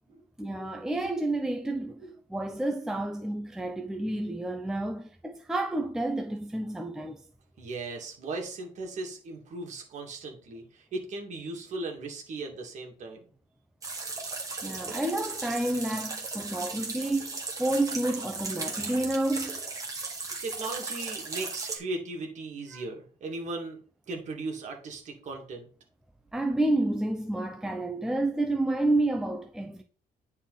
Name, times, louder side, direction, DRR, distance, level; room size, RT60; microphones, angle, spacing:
voice 1, 0.4-2.0 2.3-7.2 14.6-19.6 22.7-22.8 26.3-29.8, right 2 dB, 5° right, 0.6 m, -30 dB
voice 2, 7.6-13.3 20.4-23.8 24.1-25.7, right 3 dB, 45° right, 2.4 m, -37 dB
sound 1, 13.8-21.8, right 3 dB, 20° right, 2.0 m, -36 dB
9.9 x 4.2 x 4.1 m
cardioid pair, 140°, 16 cm